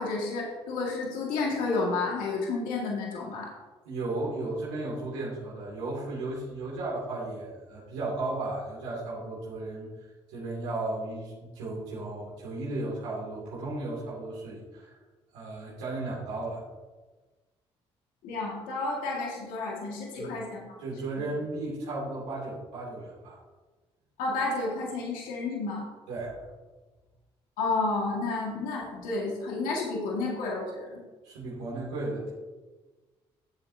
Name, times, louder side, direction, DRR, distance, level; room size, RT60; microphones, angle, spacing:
voice 1, 0.0-3.5 18.2-20.8 21.2-21.3 24.2-25.9 27.6-31.0, left 3 dB, 80° left, -2 dB, 1.9 m, -31 dB
voice 2, 3.8-9.9 10.3-14.9 15.3-16.6 20.2-20.3 20.8-23.4 26.1-26.5 31.2-32.3, right 2 dB, 85° right, -7 dB, 2.5 m, -35 dB
11.5 x 7.6 x 2.8 m, 1.3 s
hypercardioid pair, 50°, 14 cm